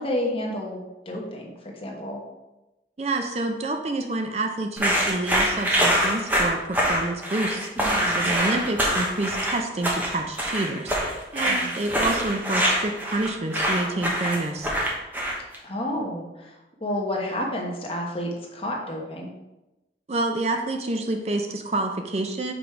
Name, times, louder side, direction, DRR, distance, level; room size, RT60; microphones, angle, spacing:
voice 1, 0.0-2.2 7.8-8.1 11.4-11.7 15.6-19.3, left 1 dB, 30° left, 0 dB, 1.1 m, -30 dB
voice 2, 3.0-7.7 8.1-14.7 20.1-22.5, right 2 dB, 35° right, 3 dB, 0.5 m, -28 dB
sound 1, 4.8-15.5, equal, 10° right, 1.0 m, -24 dB
5.1 x 4.7 x 4.8 m, 1.0 s
head